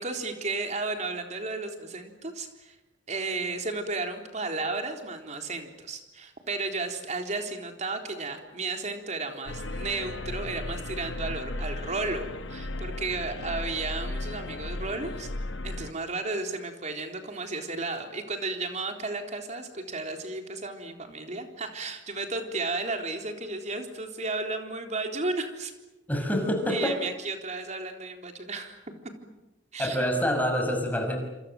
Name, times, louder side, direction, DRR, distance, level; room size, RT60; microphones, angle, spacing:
voice 1, 0.0-2.8 3.1-15.3 15.6-25.7 26.7-28.8 29.7-30.1, right 3 dB, 40° right, 4 dB, 3.8 m, -33 dB
sound 1, 9.5-15.9, left 2 dB, 85° left, 1.2 m, -35 dB
voice 2, 26.1-27.0 29.8-31.2, equal, 10° left, 3 dB, 6.1 m, -26 dB
27.5 x 27.0 x 7.8 m, 1.0 s
head